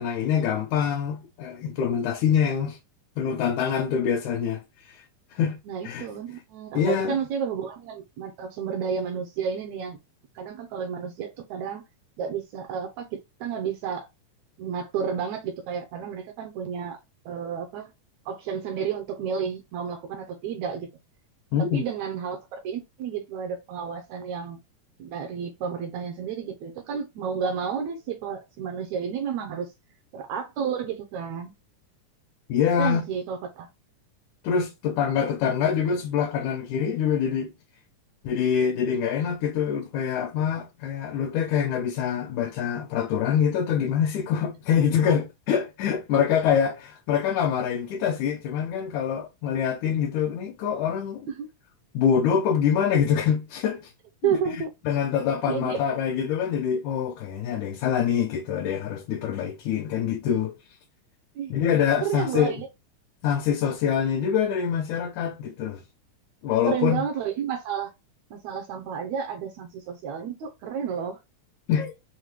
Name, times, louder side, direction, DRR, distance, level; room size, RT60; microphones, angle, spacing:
voice 1, 0.0-2.8 3.2-4.6 5.3-5.6 5.8-6.1 6.8-7.2 21.5-21.8 32.5-33.0 34.4-37.5 38.2-51.3 51.9-53.9 54.2-54.4 54.9-60.5 61.5-62.6 63.2-65.8 66.4-67.0 71.7-71.9, left 8 dB, 75° left, 2.0 m, -25 dB
voice 2, 5.7-10.0 10.4-11.8 12.2-14.1 14.6-17.0 17.3-17.9 18.3-20.9 21.7-24.6 25.0-29.7 30.1-31.5 32.8-33.7 46.1-46.2 51.3-51.5 54.2-54.7 55.5-55.8 61.4-61.5 62.0-62.7 66.7-67.9 68.3-71.2, right 7 dB, 75° right, 1.8 m, -31 dB
5.7 x 2.2 x 3.0 m
omnidirectional pair, 3.7 m